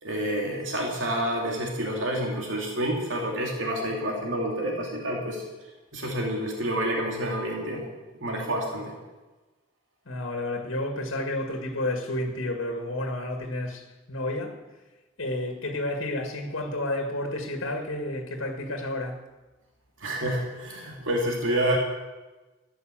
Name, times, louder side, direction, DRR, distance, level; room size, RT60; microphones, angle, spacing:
voice 1, 0.0-5.4 5.9-7.9 8.2-8.9 20.0-21.8, right 1 dB, 70° right, 2.6 m, -28 dB
voice 2, 10.1-14.6 15.2-19.2, left 1 dB, 75° left, 1.9 m, -31 dB
13.5 x 10.0 x 7.5 m
head